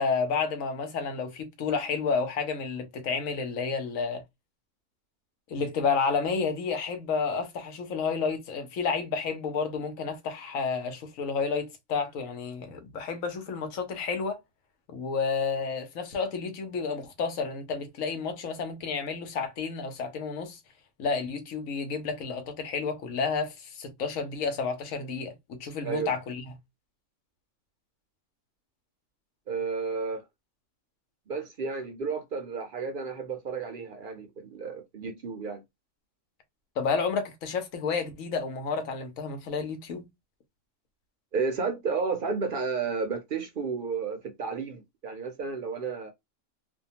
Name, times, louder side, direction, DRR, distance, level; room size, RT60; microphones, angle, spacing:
voice 1, 0.0-4.2 5.5-14.4 14.9-20.6 21.0-26.4 36.8-40.1, left 5 dB, 90° left, 1.2 m, -30 dB
voice 2, 29.5-30.2 31.3-35.6 41.3-46.1, right 5 dB, 60° right, 0.6 m, -32 dB
2.6 x 2.2 x 2.6 m
omnidirectional pair, 1.4 m